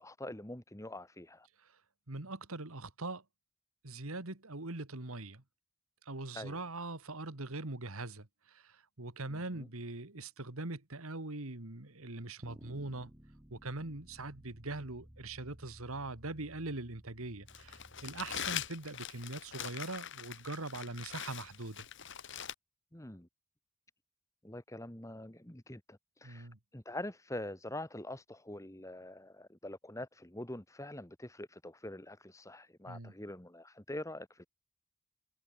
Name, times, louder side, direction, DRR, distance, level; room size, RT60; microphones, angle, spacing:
voice 1, 0.0-1.5 6.3-6.6 9.3-9.7 22.9-23.3 24.4-34.5, left 1 dB, 15° left, 1.6 m, -45 dB
voice 2, 2.1-3.2 3.8-5.4 6.0-13.1 13.5-21.9 26.2-26.6 32.9-33.1, right 2 dB, 75° right, 2.1 m, -42 dB
sound 1, 12.4-18.7, equal, 10° right, 1.1 m, -57 dB
Crumpling crinkling, 17.5-22.5, left 9 dB, 55° left, 2.3 m, -42 dB
head